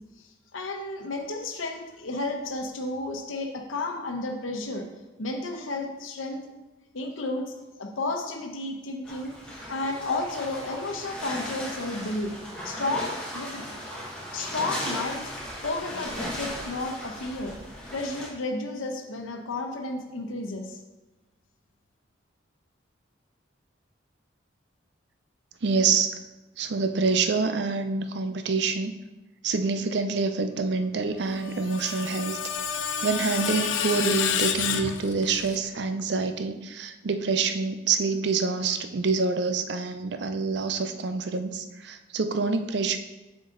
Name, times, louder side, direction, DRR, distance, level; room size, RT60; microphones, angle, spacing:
voice 1, 0.2-4.9 5.2-6.5 6.9-9.3 9.6-12.3 12.6-13.7 14.3-15.2 15.6-17.6 17.9-20.8, left 2 dB, 90° left, 3 dB, 0.9 m, -32 dB
sound 1, 9.0-18.3, equal, 5° left, 1.4 m, -37 dB
voice 2, 25.6-26.2 26.6-29.0 29.4-32.5 33.0-43.0, right 4 dB, 60° right, 8 dB, 0.5 m, -26 dB
Screech, 31.3-35.6, left 8 dB, 75° left, 0.5 m, -29 dB
6.7 x 4.9 x 3.8 m, 1.1 s
head